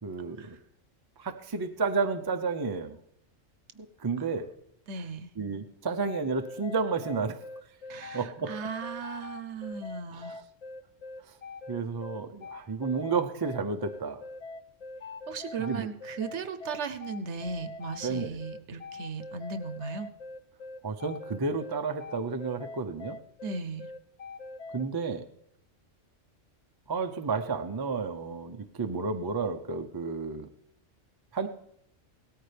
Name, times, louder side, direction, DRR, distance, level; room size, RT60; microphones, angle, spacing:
voice 1, 0.0-0.6 1.2-3.0 4.0-4.5 5.4-7.4 8.1-8.5 10.1-10.3 11.7-14.2 15.6-15.9 18.0-18.4 20.8-23.2 24.7-25.2 26.9-30.5 31.3-31.5, right 4 dB, 25° right, 6 dB, 0.5 m, -31 dB
voice 2, 4.9-5.3 7.9-10.3 15.3-20.1 23.4-23.9, right 5 dB, 65° right, 10 dB, 1.1 m, -37 dB
sound 1, 6.0-24.8, left 3 dB, 60° left, 0.4 m, -43 dB
17.5 x 13.5 x 3.3 m, 0.77 s
omnidirectional pair, 1.3 m